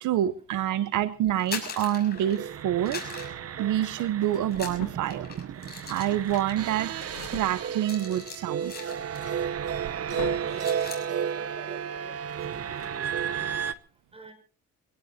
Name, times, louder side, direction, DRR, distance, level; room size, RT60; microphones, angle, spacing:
voice 1, 0.0-3.0 3.6-5.3 5.9-6.9 7.3-8.7, right 12 dB, 80° right, 15 dB, 0.9 m, -27 dB
sound 1, 1.3-2.5 2.9-4.1 4.5-9.4 9.7-10.0 10.3-11.1, left 5 dB, 30° left, 6.5 m, -41 dB
sound 2, 1.8-2.6 3.8-5.3 5.6-8.1 8.4-8.5 8.8-11.0 11.2-11.4 11.7-13.8, left 12 dB, 90° left, 1.3 m, -47 dB
sound 3, 2.1-13.7, right 8 dB, 55° right, 0.9 m, -33 dB
voice 2, 10.3-13.6 14.1-14.3, right 3 dB, 20° right, 7 dB, 6.5 m, -49 dB
24.0 x 17.5 x 2.8 m, 0.36 s
cardioid pair, 90°, 30 cm